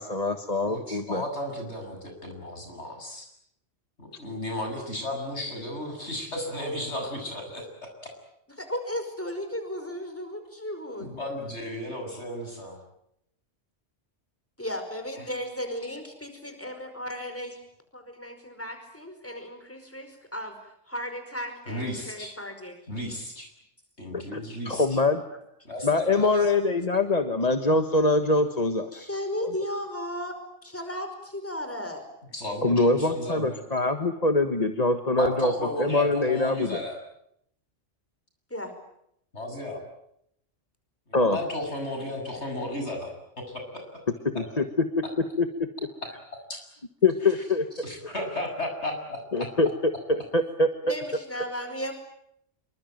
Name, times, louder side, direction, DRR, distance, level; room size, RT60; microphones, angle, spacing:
voice 1, 0.0-1.2 24.1-25.2 25.8-29.1 29.4-29.5 32.6-35.5 35.8-36.8 41.1-41.4 44.2-45.0 45.4-45.5 47.0-47.7 49.3-50.9, left 2 dB, 35° left, 7 dB, 1.5 m, -24 dB
voice 2, 0.6-3.3 4.0-7.7 8.0-8.1 11.0-12.8 21.7-22.3 22.9-23.5 24.0-24.9 25.6-26.3 32.3-33.6 35.2-37.0 39.3-39.8 41.1-43.1 43.5-43.8 46.5-46.6 47.2-47.3 47.8-49.5, left 1 dB, 65° left, 4 dB, 7.8 m, -34 dB
voice 3, 8.6-11.1 14.6-17.6 17.9-22.8 28.9-32.1 38.5-38.7 50.9-51.9, equal, 10° left, 7 dB, 5.2 m, -35 dB
27.0 x 24.0 x 9.2 m, 0.75 s
omnidirectional pair, 1.2 m